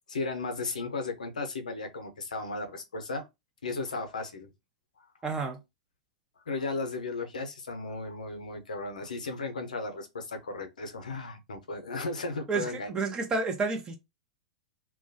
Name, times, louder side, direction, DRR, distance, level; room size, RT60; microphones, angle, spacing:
voice 1, 0.1-3.2 3.6-4.5 6.5-12.9, left 3 dB, 85° left, 0.6 m, -35 dB
voice 2, 5.2-5.6 12.5-14.0, right 4 dB, 20° right, 0.6 m, -30 dB
2.2 x 2.1 x 2.6 m
hypercardioid pair, 105°, 4 cm